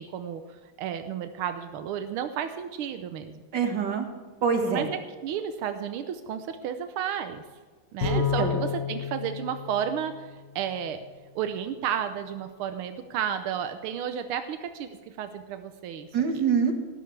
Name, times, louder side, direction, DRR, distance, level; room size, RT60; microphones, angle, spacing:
voice 1, 0.0-3.4 4.7-7.4 7.9-10.3 10.5-11.0 11.3-16.1, right 8 dB, 90° right, 8 dB, 1.6 m, -32 dB
voice 2, 3.5-4.1 4.4-4.9 8.0-8.6 16.1-16.7, right 6 dB, 55° right, 4 dB, 2.2 m, -25 dB
Bowed string instrument, 8.0-10.6, left 6 dB, 55° left, 2.2 m, -30 dB
18.5 x 11.5 x 3.3 m, 1.4 s
omnidirectional pair, 2.3 m